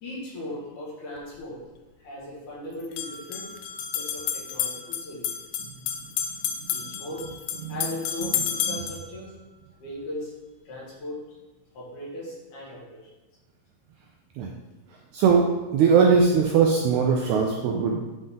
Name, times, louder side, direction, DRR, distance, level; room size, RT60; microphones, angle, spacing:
voice 1, 0.0-1.6 2.0-3.5 3.9-5.3 6.7-7.2 7.7-9.3 9.8-10.3 10.6-11.4 11.7-13.1, left 1 dB, 65° left, -6 dB, 3.2 m, -38 dB
sound 1, 1.2-1.3 2.8-9.1, left 8 dB, 85° left, 1.6 m, -31 dB
voice 2, 15.1-15.5 15.7-18.0, right 5 dB, 80° right, 0 dB, 1.7 m, -20 dB
9.0 x 3.9 x 3.8 m, 1.2 s
omnidirectional pair, 3.9 m